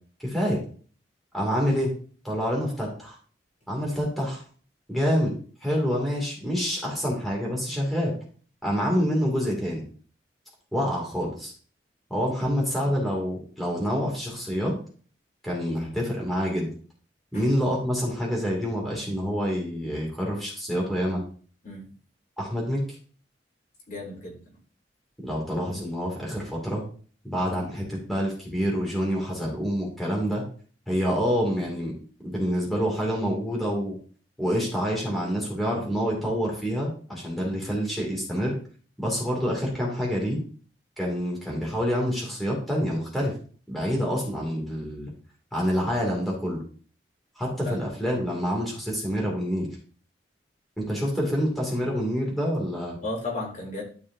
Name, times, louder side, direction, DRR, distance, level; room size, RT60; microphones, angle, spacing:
voice 1, 0.2-0.6 1.3-1.9 2.2-3.2 3.7-4.4 4.9-5.3 5.6-8.1 8.6-9.8 10.7-11.5 12.1-14.7 15.4-16.7 17.3-21.2 22.4-22.8 25.2-26.8 27.2-30.4 30.9-31.9 32.2-34.0 34.4-38.5 39.0-40.4 41.0-43.3 43.7-45.1 45.5-46.6 47.4-49.7 50.8-53.0, equal, ahead, -3 dB, 2.4 m, -27 dB
voice 2, 23.9-24.4 47.6-47.8 53.0-53.8, left 2 dB, 50° left, -2 dB, 3.1 m, -34 dB
12.5 x 5.0 x 2.7 m, 0.43 s
head